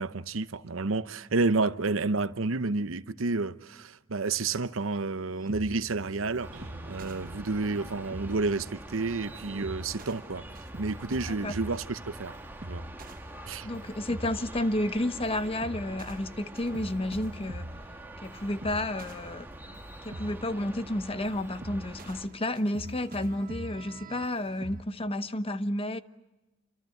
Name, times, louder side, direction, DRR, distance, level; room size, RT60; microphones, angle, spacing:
voice 1, 0.0-10.5 10.8-12.4 12.7-12.9 13.5-13.7, right 3 dB, 75° right, 0.9 m, -30 dB
sound 1, 4.9-24.8, right 1 dB, 45° right, 1.1 m, -45 dB
sound 2, 6.4-22.3, right 1 dB, 10° right, 1.6 m, -45 dB
voice 2, 13.6-17.7 18.2-26.0, left 1 dB, 30° left, 1.0 m, -31 dB
28.5 x 25.5 x 7.8 m
head